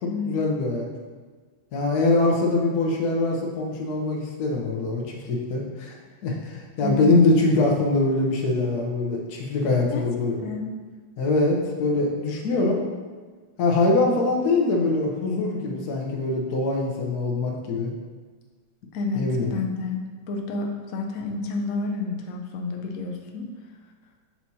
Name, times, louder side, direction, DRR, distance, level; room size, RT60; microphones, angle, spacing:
voice 1, 0.0-0.9 1.7-6.0 6.2-10.4 11.2-12.8 13.6-17.9 19.1-19.5, left 2 dB, 60° left, 0 dB, 1.3 m, -23 dB
voice 2, 10.4-10.7 18.9-19.3 19.5-20.0 20.3-23.5, left 3 dB, 85° left, 2 dB, 0.7 m, -30 dB
6.0 x 5.9 x 2.8 m, 1.5 s
omnidirectional pair, 2.2 m